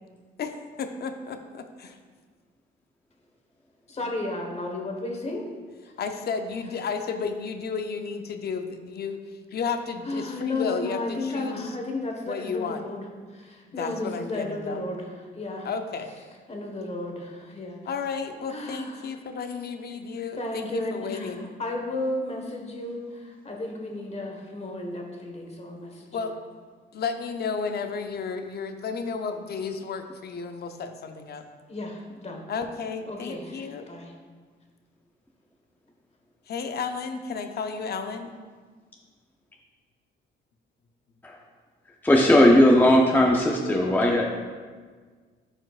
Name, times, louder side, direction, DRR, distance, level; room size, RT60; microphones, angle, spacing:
voice 1, 0.4-2.0 6.0-9.2 9.5-11.8 12.2-12.8 13.8-14.8 15.6-16.1 17.9-21.5 26.1-26.4 26.9-31.4 32.5-33.9 36.5-38.3, left 5 dB, 55° left, 6 dB, 0.6 m, -32 dB
voice 2, 3.9-5.4 10.0-15.7 16.5-17.8 18.5-19.1 20.4-26.3 31.7-32.4 33.1-34.1, left 2 dB, 35° left, 0 dB, 1.4 m, -33 dB
voice 3, 42.0-44.3, left 1 dB, 10° left, -1 dB, 0.7 m, -17 dB
11.0 x 4.4 x 2.4 m, 1.5 s
cardioid pair, 90°, 20 cm